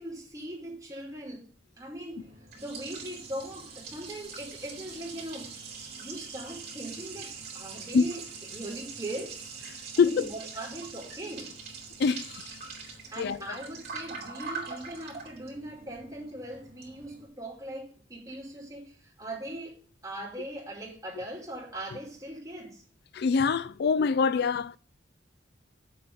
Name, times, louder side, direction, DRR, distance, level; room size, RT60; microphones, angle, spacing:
voice 1, 0.0-1.5 1.8-2.3 2.5-5.5 6.0-8.2 8.5-9.5 9.9-11.5 13.1-19.8 20.0-22.8, right 1 dB, 20° right, 5.0 m, -40 dB
Liquid, 2.1-17.3, right 5 dB, 55° right, 3.7 m, -43 dB
voice 2, 10.0-10.3 12.0-12.5 13.2-13.4 23.1-24.8, left 5 dB, 60° left, 0.4 m, -24 dB
7.8 x 6.7 x 7.7 m
head